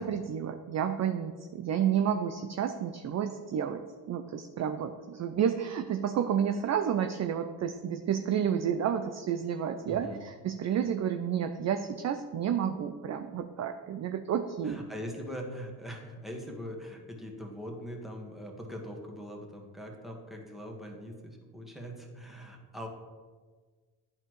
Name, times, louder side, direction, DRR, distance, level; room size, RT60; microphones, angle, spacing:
voice 1, 0.0-3.8 4.1-14.8, right 8 dB, 35° right, 8 dB, 0.5 m, -30 dB
voice 2, 9.9-10.2 14.6-22.9, equal, ahead, 0 dB, 1.6 m, -42 dB
11.0 x 4.2 x 3.1 m, 1.5 s
hypercardioid pair, 50°, 49 cm